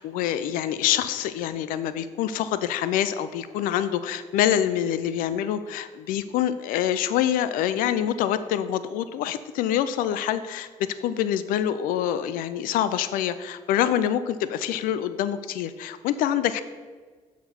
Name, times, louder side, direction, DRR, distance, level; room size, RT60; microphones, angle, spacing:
voice 1, 0.0-16.6, left 10 dB, 90° left, 13 dB, 0.4 m, -26 dB
7.0 x 4.9 x 5.6 m, 1.4 s
supercardioid pair, 60°, 14 cm